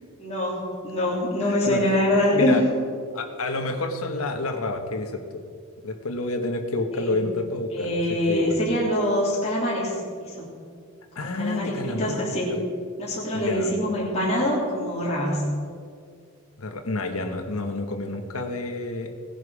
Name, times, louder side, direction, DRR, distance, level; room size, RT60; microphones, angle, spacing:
voice 1, 0.2-2.6 6.9-7.3 7.7-10.5 11.2-12.5 13.0-15.4, left 1 dB, 30° left, -6 dB, 3.3 m, -24 dB
voice 2, 1.5-1.8 2.3-2.6 3.1-5.2 5.8-8.6 11.1-12.2 13.3-13.7 16.6-19.1, left 2 dB, 75° left, 5 dB, 1.4 m, -29 dB
17.5 x 10.5 x 5.0 m, 2.2 s
head